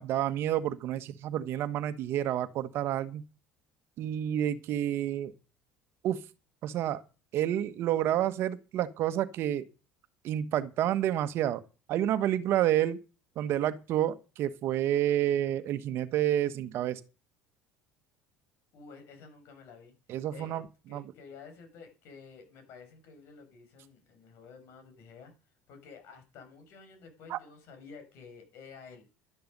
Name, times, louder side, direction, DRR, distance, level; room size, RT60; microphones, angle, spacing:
voice 1, 0.0-3.2 4.0-5.3 6.0-6.2 6.6-7.0 7.3-9.6 10.2-11.6 11.9-13.0 13.4-17.0 20.1-20.6 20.9-21.0 27.3-27.4, right 11 dB, 60° right, 1.2 m, -29 dB
voice 2, 18.7-19.9 20.3-20.6 20.9-25.3 25.7-29.1, left 5 dB, 65° left, 6.1 m, -51 dB
12.0 x 10.5 x 5.4 m
supercardioid pair, 95°, 5 cm